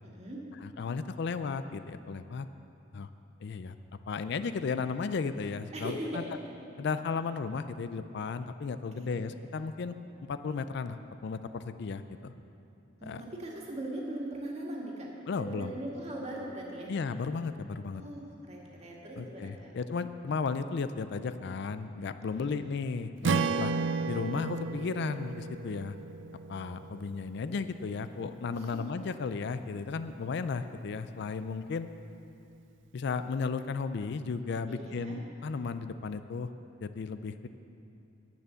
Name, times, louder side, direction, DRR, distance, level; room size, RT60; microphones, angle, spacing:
voice 1, 0.0-0.4 5.7-6.4 9.0-9.1 13.0-16.9 17.9-19.7 22.3-22.7 34.7-35.2, right 1 dB, 35° right, -3 dB, 2.0 m, -40 dB
voice 2, 0.6-2.5 2.9-3.1 3.4-3.8 4.1-6.2 6.8-9.9 10.3-11.0 11.2-12.3 13.0-13.2 15.3-15.7 16.9-18.0 19.2-23.7 24.1-26.0 26.5-31.9 32.9-36.5 36.8-37.5, left 4 dB, 60° left, 11 dB, 0.4 m, -34 dB
Strum, 23.2-27.5, right 4 dB, 65° right, 0.4 m, -33 dB
10.5 x 9.0 x 6.9 m, 2.8 s
head